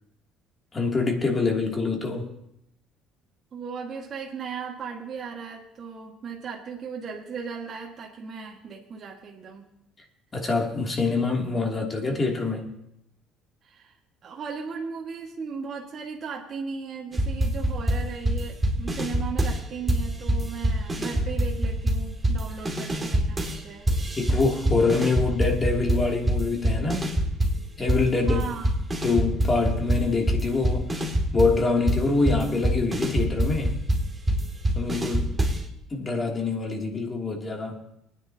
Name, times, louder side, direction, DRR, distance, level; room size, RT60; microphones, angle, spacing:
voice 1, 0.7-2.3 10.3-12.7 24.2-27.1 27.8-28.5 29.0-30.9 31.3-33.8 34.8-35.4 35.9-37.8, left 3 dB, 30° left, 1 dB, 2.8 m, -25 dB
voice 2, 3.5-9.7 13.6-13.9 14.2-23.9 28.3-28.7, right 5 dB, 45° right, -2 dB, 1.8 m, -36 dB
sound 1, 17.1-19.6 19.9-23.6 23.9-27.6 27.9-35.7, right 1 dB, 20° right, 2.5 m, -25 dB
23.0 x 9.9 x 2.9 m, 0.79 s
supercardioid pair, 80°, 0 cm